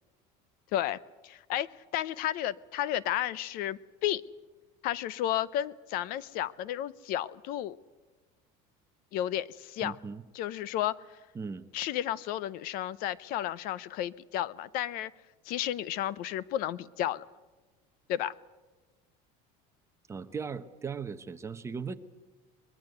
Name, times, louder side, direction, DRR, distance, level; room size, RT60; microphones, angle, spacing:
voice 1, 1.2-1.7 1.9-4.2 4.8-7.8 9.1-9.9 10.3-11.0 11.7-15.1 15.5-17.3 18.1-18.3, left 12 dB, 50° left, 19 dB, 0.7 m, -32 dB
voice 2, 9.8-10.2 11.3-11.6 20.1-22.0, right 5 dB, 15° right, 9 dB, 0.9 m, -38 dB
23.5 x 21.5 x 8.0 m, 1.2 s
cardioid pair, 170°, 18 cm